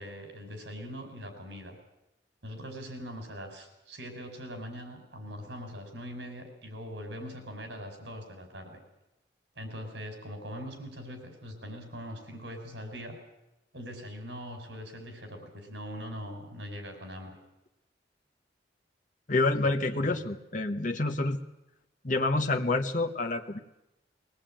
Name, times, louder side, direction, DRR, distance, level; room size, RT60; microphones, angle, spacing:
voice 1, 0.0-1.8 2.4-8.8 9.5-13.2 13.7-17.4 19.6-20.0, equal, 75° right, 5 dB, 5.1 m, -42 dB
voice 2, 19.3-21.4 22.0-23.6, left 2 dB, 45° left, 3 dB, 1.1 m, -28 dB
21.5 x 18.5 x 8.9 m, 0.92 s
head